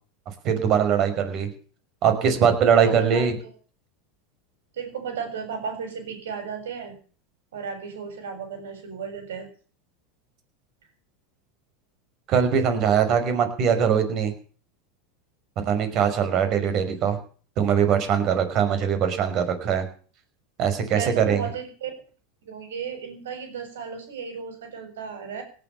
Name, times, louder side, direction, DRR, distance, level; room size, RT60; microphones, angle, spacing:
voice 1, 0.4-1.5 2.0-3.3 12.3-14.3 15.7-17.2 17.6-19.8 20.6-21.4, right 7 dB, 45° right, 8 dB, 5.5 m, -21 dB
voice 2, 2.7-3.5 4.7-7.0 7.5-9.5 20.9-21.9 22.5-25.4, right 6 dB, 85° right, 6 dB, 7.2 m, -34 dB
18.5 x 9.5 x 7.1 m, 0.41 s
hypercardioid pair, 105°, 0 cm